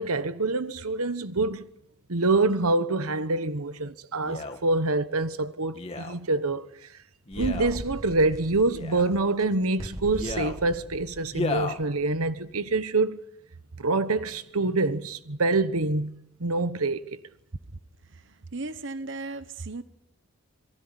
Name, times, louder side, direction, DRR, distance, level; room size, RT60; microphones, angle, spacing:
voice 1, 0.0-1.7 2.1-6.7 7.3-13.2 13.8-16.1 16.4-17.2, right 3 dB, 90° right, 1.2 m, -26 dB
Male speech man speaking, 4.2-4.6 5.7-6.2 7.3-7.8 8.7-9.2 10.1-10.6 11.3-11.8 12.5-12.6, left 3 dB, 25° left, 2.2 m, -33 dB
sound 1, 7.3-12.1, right 1 dB, 15° right, 1.3 m, -39 dB
voice 2, 18.1-19.8, right 3 dB, 55° right, 1.1 m, -36 dB
26.5 x 18.0 x 9.9 m
head